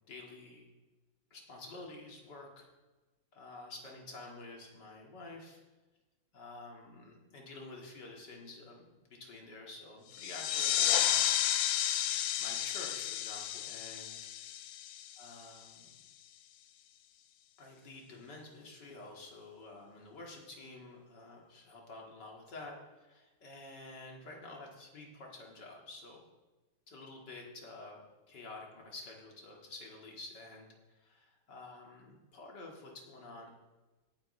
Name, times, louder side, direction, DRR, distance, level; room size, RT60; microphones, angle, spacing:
voice 1, 0.1-0.7 1.3-2.7 3.3-5.6 6.3-11.2 12.1-14.5 15.2-15.9 17.6-26.2 26.9-33.5, left 2 dB, 55° left, -1 dB, 2.6 m, -50 dB
sound 1, 10.1-15.5, left 11 dB, 85° left, 1.5 m, -32 dB
18.0 x 9.4 x 3.2 m, 1.2 s
omnidirectional pair, 2.3 m